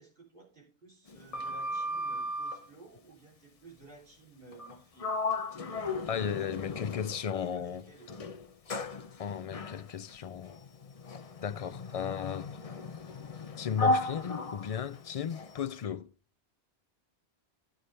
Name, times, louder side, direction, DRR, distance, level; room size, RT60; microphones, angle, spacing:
voice 1, 0.0-5.1 6.2-8.3, right 3 dB, 50° right, 3.9 m, -55 dB
Sliding door, 1.1-2.7 4.5-4.7 5.0-7.5 8.1-15.6, left 2 dB, 35° left, 0.7 m, -35 dB
voice 2, 6.1-7.9 9.2-10.6 11.4-12.6 13.6-16.1, left 8 dB, 55° left, 0.4 m, -35 dB
14.0 x 6.4 x 3.4 m
omnidirectional pair, 1.1 m